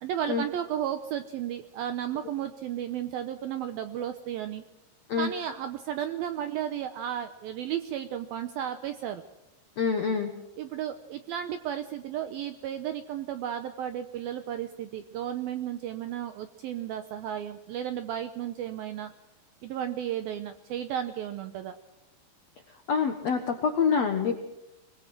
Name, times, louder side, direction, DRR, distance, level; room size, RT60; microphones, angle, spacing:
voice 1, 0.0-4.6 5.2-9.2 10.6-19.1 19.6-21.8, right 10 dB, 80° right, 9 dB, 2.2 m, -33 dB
voice 2, 9.8-10.3 22.7-24.4, left 6 dB, 70° left, 5 dB, 1.5 m, -26 dB
24.0 x 20.5 x 6.1 m, 0.94 s
omnidirectional pair, 5.3 m